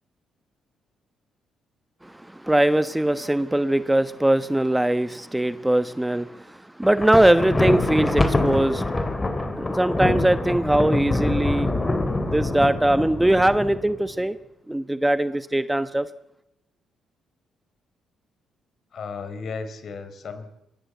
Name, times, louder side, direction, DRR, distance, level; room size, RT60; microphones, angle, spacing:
voice 1, 2.0-8.8 9.6-11.7 12.3-14.4 14.7-16.1, right 1 dB, 10° right, 12 dB, 1.2 m, -21 dB
Thunder, 6.8-14.1, left 2 dB, 20° left, 3.8 m, -25 dB
voice 2, 18.9-20.5, left 5 dB, 55° left, 11 dB, 4.5 m, -34 dB
26.0 x 22.5 x 8.2 m, 0.86 s
cardioid pair, 90°, 0 cm